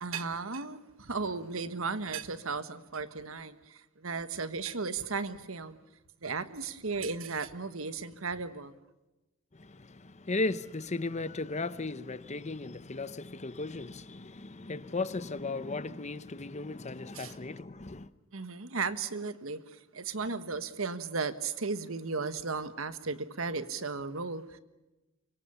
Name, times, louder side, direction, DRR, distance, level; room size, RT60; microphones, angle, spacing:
voice 1, 0.0-5.8 6.2-8.7 17.1-17.3 18.3-24.6, right 4 dB, 80° right, 1.4 m, -35 dB
voice 2, 9.5-18.1, left 3 dB, 35° left, 0.9 m, -36 dB
24.5 x 23.5 x 7.1 m
head